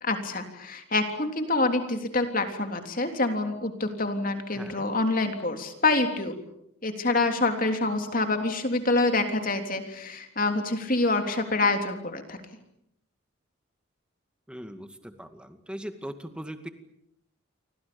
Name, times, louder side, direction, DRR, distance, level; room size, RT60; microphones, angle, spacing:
voice 1, 0.0-6.3 6.8-12.4, left 2 dB, 40° left, 6 dB, 3.4 m, -26 dB
voice 2, 14.5-16.7, equal, 5° right, 7 dB, 2.1 m, -40 dB
30.0 x 25.0 x 7.1 m, 0.79 s
head